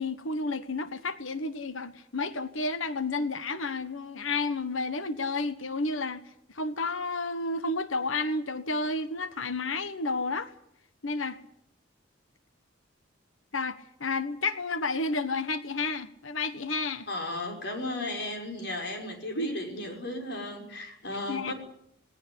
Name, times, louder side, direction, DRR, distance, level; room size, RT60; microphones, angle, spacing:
voice 1, 0.0-10.5 11.0-11.4 13.5-17.1 19.3-19.8 21.3-21.5, left 3 dB, 90° left, 1.4 m, -31 dB
voice 2, 17.1-21.5, left 1 dB, 60° left, 5.9 m, -35 dB
19.0 x 18.0 x 10.0 m
head